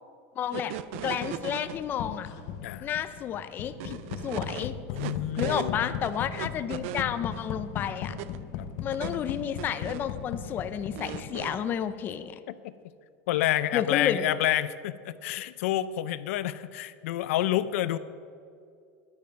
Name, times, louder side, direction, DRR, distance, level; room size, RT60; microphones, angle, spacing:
voice 1, 0.4-2.3 2.8-4.7 5.4-8.1 8.8-12.4 13.7-14.3, left 9 dB, 25° left, 11 dB, 0.5 m, -31 dB
sound 1, 0.5-1.8 3.8-5.7 6.0-7.5 8.0-8.4 8.9-10.1 11.0-11.7, right 13 dB, 65° right, 0.4 m, -38 dB
sound 2, 0.9-11.8, left 8 dB, 50° left, 0.8 m, -38 dB
voice 2, 4.6-6.0 8.6-8.7 12.6-12.7 13.3-18.0, left 13 dB, 80° left, 14 dB, 0.5 m, -29 dB
10.5 x 9.3 x 5.3 m, 2.3 s
supercardioid pair, 155°, 7 cm